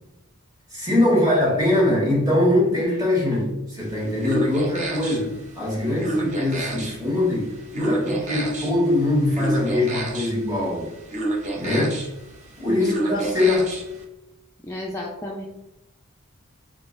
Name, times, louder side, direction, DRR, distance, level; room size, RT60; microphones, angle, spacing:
voice 1, 0.7-10.9 11.5-12.0 12.6-13.8, left 1 dB, 20° right, -4 dB, 1.4 m, -22 dB
sound 1, 3.8-14.0, right 2 dB, 35° right, 0.6 m, -30 dB
voice 2, 12.8-13.2 14.6-15.5, left 1 dB, 15° left, -3 dB, 0.4 m, -32 dB
3.7 x 3.5 x 2.5 m, 0.95 s
head